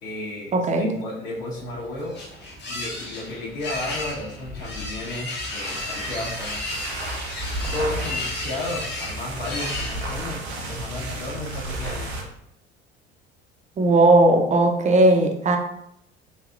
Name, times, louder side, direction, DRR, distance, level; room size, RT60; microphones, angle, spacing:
voice 1, 0.0-2.2 2.7-6.8 7.7-12.3, left 2 dB, 60° left, -11 dB, 1.3 m, -33 dB
voice 2, 0.5-0.9 13.8-15.6, right 2 dB, 25° right, 3 dB, 0.5 m, -17 dB
sound 1, 1.6-10.4, left 2 dB, 35° left, 0.8 m, -34 dB
sound 2, 5.3-12.3, right 2 dB, 85° right, 0.6 m, -33 dB
3.2 x 2.6 x 2.5 m, 0.74 s
figure-of-eight pair, 60°, 31 cm